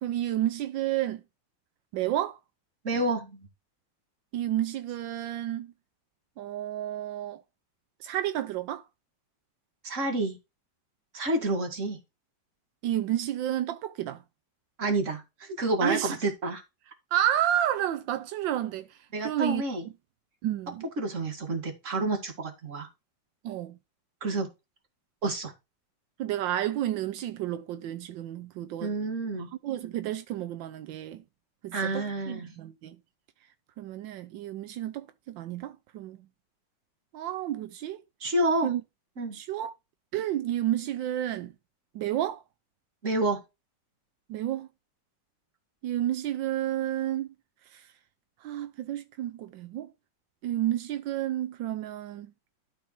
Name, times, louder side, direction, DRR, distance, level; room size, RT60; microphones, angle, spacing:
voice 1, 0.0-1.2 1.9-2.4 4.3-5.7 6.4-7.4 8.0-8.8 12.8-14.2 15.8-16.1 17.1-18.9 19.2-19.6 20.4-20.9 23.4-23.8 26.2-28.9 29.6-31.2 31.6-33.0 33.8-36.2 37.1-38.0 38.6-38.8 39.3-39.7 40.1-41.5 41.9-42.4 44.3-44.7 45.8-47.3 47.7-47.8 48.4-49.9 50.4-52.3, right 12 dB, 85° right, 1.4 m, -31 dB
voice 2, 2.8-3.4 9.8-10.4 11.1-12.0 14.8-16.6 19.1-19.9 21.0-22.9 24.2-24.5 25.2-25.5 28.8-29.5 31.7-32.5 38.2-38.7 39.2-39.4 43.0-43.4, right 2 dB, 40° right, 2.3 m, -29 dB
12.0 x 4.2 x 4.4 m
omnidirectional pair, 2.0 m